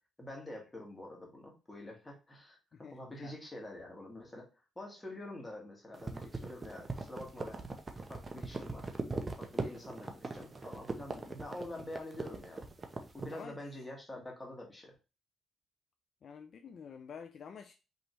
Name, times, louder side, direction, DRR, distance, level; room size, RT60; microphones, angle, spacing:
voice 1, 0.2-4.5 4.7-7.7 8.1-8.9 9.4-12.7 13.1-14.9, left 1 dB, 15° left, 1.7 m, -46 dB
voice 2, 2.7-3.3 13.3-13.6 16.2-17.7, left 6 dB, 55° left, 0.4 m, -49 dB
sound 1, 5.9-13.4, right 3 dB, 25° right, 0.7 m, -40 dB
5.2 x 3.1 x 3.0 m
cardioid pair, 115°, 0 cm